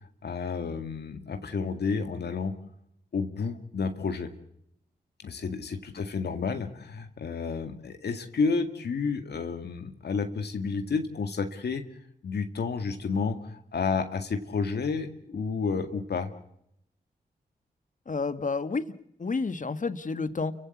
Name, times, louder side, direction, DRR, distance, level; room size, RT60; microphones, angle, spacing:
voice 1, 0.2-2.5 3.1-4.3 5.2-11.8 12.2-16.3, left 5 dB, 75° left, 7 dB, 2.0 m, -30 dB
voice 2, 18.1-18.9 19.2-20.5, left 4 dB, 50° left, 11 dB, 1.8 m, -30 dB
29.5 x 16.0 x 8.5 m, 0.76 s
cardioid pair, 50°, 17 cm